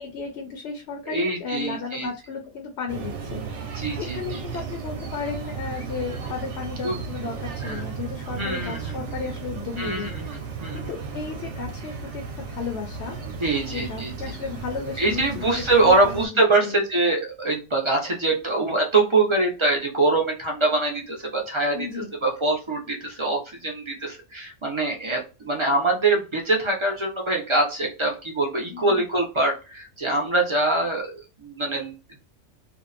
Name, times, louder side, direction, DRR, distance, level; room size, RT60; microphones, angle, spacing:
voice 1, 0.0-10.3 10.7-13.2 13.7-16.8 21.7-22.1 28.7-29.0, left 5 dB, 65° left, 3 dB, 0.7 m, -34 dB
voice 2, 1.1-2.1 3.7-4.4 6.8-7.0 7.6-7.8 8.4-9.2 9.8-10.9 13.4-14.1 15.0-31.1 31.4-32.0, right 2 dB, 45° right, 0 dB, 0.3 m, -24 dB
sound 1, 2.9-16.3, right 5 dB, 65° right, 0.9 m, -35 dB
2.7 x 2.0 x 2.4 m, 0.30 s
omnidirectional pair, 1.4 m